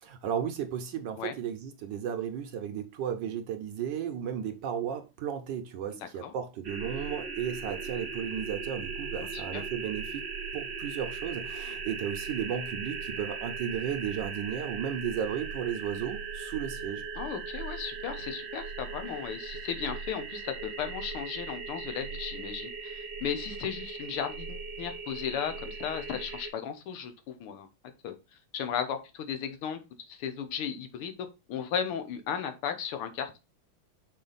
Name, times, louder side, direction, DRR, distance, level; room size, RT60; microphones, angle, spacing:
voice 1, 0.0-10.2 10.5-17.0, right 8 dB, 70° right, 1.1 m, -34 dB
sound 1, 6.6-26.5, right 5 dB, 45° right, 0.8 m, -38 dB
voice 2, 9.3-9.6 17.2-27.7 28.0-28.2 28.5-33.4, left 8 dB, 80° left, 1.8 m, -35 dB
6.1 x 4.3 x 3.9 m
omnidirectional pair, 2.4 m